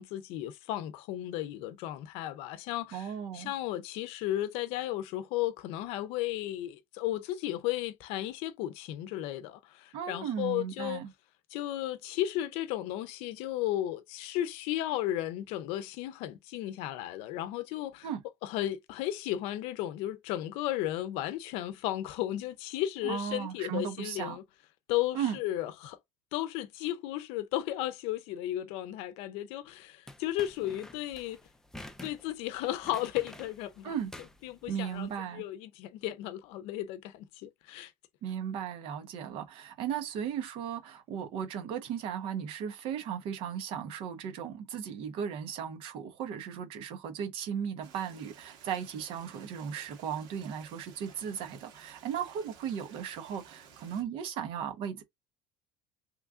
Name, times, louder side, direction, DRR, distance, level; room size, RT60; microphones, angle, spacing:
voice 1, 0.0-3.1 3.3-11.0 11.5-18.1 18.4-24.4 24.9-26.0 26.3-31.4 32.0-33.9 34.4-35.1 35.3-37.9, left 13 dB, 75° left, 0.5 m, -34 dB
voice 2, 2.9-3.5 9.9-11.1 18.0-18.2 23.0-24.4 25.1-25.4 33.8-34.1 34.7-35.4 38.2-55.0, right 8 dB, 65° right, 0.9 m, -36 dB
sound 1, 30.1-35.1, left 1 dB, 5° left, 0.4 m, -49 dB
Stream, 47.8-54.0, right 7 dB, 80° right, 1.3 m, -55 dB
3.1 x 2.4 x 3.5 m
cardioid pair, 135°, 10 cm